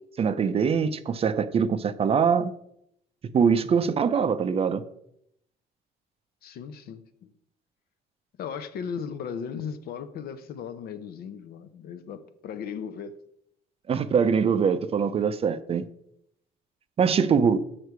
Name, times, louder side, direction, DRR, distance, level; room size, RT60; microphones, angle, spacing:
voice 1, 0.2-2.5 3.3-4.8 13.9-15.8 17.0-17.6, right 6 dB, 35° right, 0.5 m, -23 dB
voice 2, 6.4-7.3 8.4-13.2, left 7 dB, 65° left, 0.7 m, -37 dB
6.5 x 5.8 x 4.6 m
cardioid pair, 110°, 17 cm